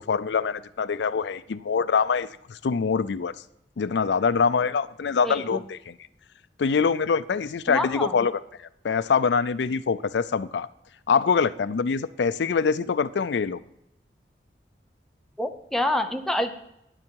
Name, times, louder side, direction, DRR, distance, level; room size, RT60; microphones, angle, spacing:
voice 1, 0.0-3.3 3.8-5.9 6.6-8.3 8.8-10.7 11.1-13.6, left 5 dB, 85° left, 15 dB, 0.4 m, -24 dB
voice 2, 5.2-5.6 7.7-8.1 15.4-16.5, left 1 dB, ahead, 5 dB, 0.8 m, -27 dB
12.5 x 9.7 x 4.6 m, 0.78 s
head